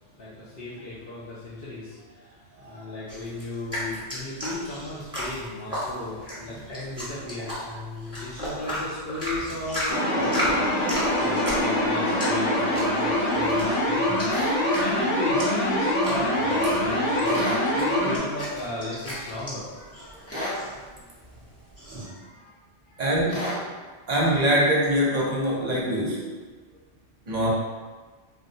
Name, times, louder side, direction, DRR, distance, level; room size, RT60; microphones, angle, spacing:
voice 1, 0.1-10.6 11.2-14.3 14.8-20.8 22.0-22.5 22.9-23.1, left 2 dB, 60° left, -8 dB, 0.8 m, -35 dB
sound 1, 3.1-22.1, equal, 5° right, 1.1 m, -35 dB
sound 2, 9.9-18.2, left 1 dB, 75° left, 1.0 m, -24 dB
sound 3, 14.3-14.6 17.3-17.7 20.3-20.6 23.3-23.6, equal, 15° left, 0.6 m, -31 dB
voice 2, 23.0-23.5 24.1-26.3 27.3-27.5, equal, 40° right, -5 dB, 0.7 m, -23 dB
3.9 x 2.1 x 2.6 m, 1.4 s
omnidirectional pair, 1.2 m